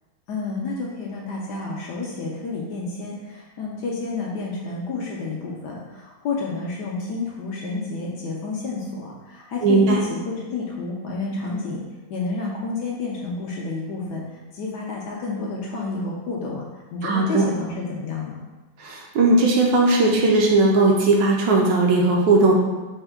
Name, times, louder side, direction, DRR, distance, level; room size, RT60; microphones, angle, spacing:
voice 1, 0.3-11.8 12.1-16.7 16.9-18.4, left 3 dB, 75° left, -3 dB, 1.0 m, -30 dB
voice 2, 9.6-10.0 17.0-17.5 18.8-22.5, right 2 dB, 75° right, -1 dB, 1.2 m, -18 dB
4.3 x 2.2 x 3.4 m, 1.2 s
omnidirectional pair, 2.1 m